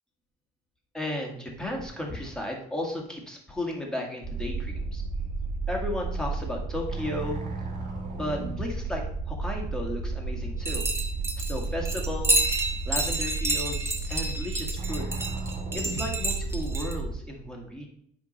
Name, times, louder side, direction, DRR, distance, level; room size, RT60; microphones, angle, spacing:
voice 1, 0.9-5.0 5.7-7.4 8.2-10.8 11.5-15.1 15.7-17.9, left 1 dB, 5° left, 0 dB, 2.2 m, -34 dB
sound 1, 4.2-17.1, right 3 dB, 50° right, 2.1 m, -32 dB
sound 2, 10.7-16.9, right 2 dB, 15° right, 1.4 m, -29 dB
9.5 x 3.8 x 5.5 m, 0.68 s
cardioid pair, 110°, 17 cm